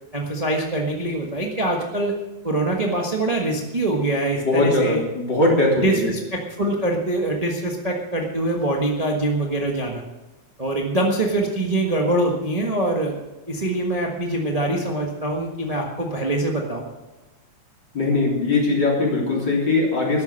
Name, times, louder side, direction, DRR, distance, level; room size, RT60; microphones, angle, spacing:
voice 1, 0.1-2.1 2.4-5.0 5.8-10.0 10.6-13.1 13.5-16.9, right 2 dB, 35° right, 0 dB, 0.5 m, -24 dB
voice 2, 4.4-6.1 17.9-20.2, left 2 dB, 35° left, -2 dB, 4.0 m, -20 dB
13.0 x 10.5 x 6.5 m, 1.1 s
omnidirectional pair, 3.4 m